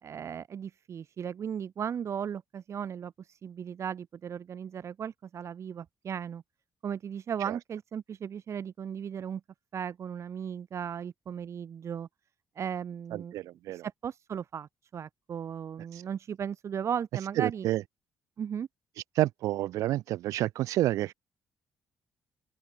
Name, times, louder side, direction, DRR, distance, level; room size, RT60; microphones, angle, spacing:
voice 1, 0.0-6.4 6.8-9.4 9.7-12.1 12.6-13.4 13.7-17.7 18.4-18.7, right 8 dB, 60° right, 2.4 m, -36 dB
voice 2, 13.1-13.8 15.9-16.0 17.4-17.8 19.2-21.1, right 15 dB, 75° right, 0.3 m, -29 dB
open air
supercardioid pair, 60°, 6 cm